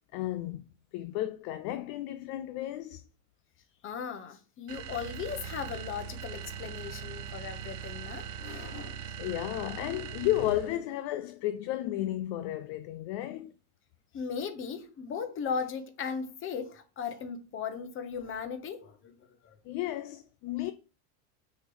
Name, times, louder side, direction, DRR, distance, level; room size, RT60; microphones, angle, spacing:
voice 1, 0.1-0.6 0.9-3.0 9.2-13.5 19.7-20.7, left 14 dB, 45° left, 0.4 m, -33 dB
voice 2, 3.8-9.0 14.1-19.6, left 6 dB, 30° left, 1.0 m, -37 dB
sound 1, 4.7-10.8, right 7 dB, 75° right, 0.9 m, -41 dB
6.3 x 3.1 x 5.4 m
supercardioid pair, 135°, 44 cm